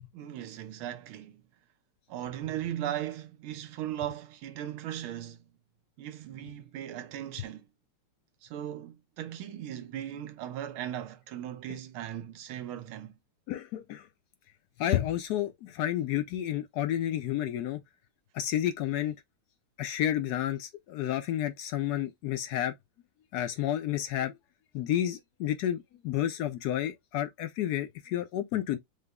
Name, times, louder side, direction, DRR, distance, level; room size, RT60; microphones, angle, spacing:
voice 1, 0.1-1.4 2.1-5.4 6.0-7.6 8.4-13.2, right 11 dB, 90° right, 1.6 m, -38 dB
voice 2, 13.5-14.0 14.8-17.8 18.3-19.1 19.8-22.7 23.3-24.3 24.7-28.8, left 12 dB, 90° left, 0.8 m, -30 dB
5.0 x 2.2 x 3.5 m
omnidirectional pair, 2.3 m